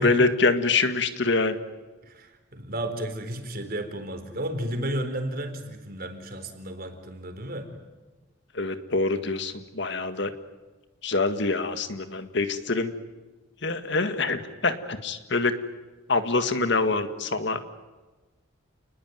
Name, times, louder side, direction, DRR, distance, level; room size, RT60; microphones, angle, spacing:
voice 1, 0.0-1.6 8.5-10.3 11.0-12.9 13.6-15.5 16.1-17.6, left 3 dB, 60° left, 9 dB, 1.9 m, -25 dB
voice 2, 2.0-7.7, right 1 dB, 50° right, 7 dB, 4.2 m, -33 dB
29.5 x 20.5 x 9.4 m, 1.2 s
head